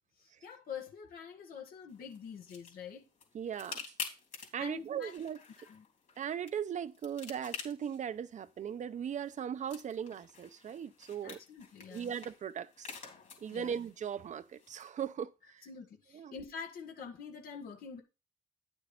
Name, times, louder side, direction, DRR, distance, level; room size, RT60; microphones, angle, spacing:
voice 1, 0.2-3.0 4.6-5.1 5.7-5.9 11.2-12.1 13.5-13.7 15.7-18.0, left 6 dB, 85° left, 1.6 m, -46 dB
sound 1, 1.9-14.9, left 5 dB, 55° left, 3.3 m, -49 dB
voice 2, 3.3-3.8 4.5-5.4 6.2-11.4 11.9-12.9 13.4-15.7 16.1-16.4, right 8 dB, 55° right, 0.7 m, -38 dB
9.9 x 6.2 x 4.0 m
cardioid pair, 115°, 15 cm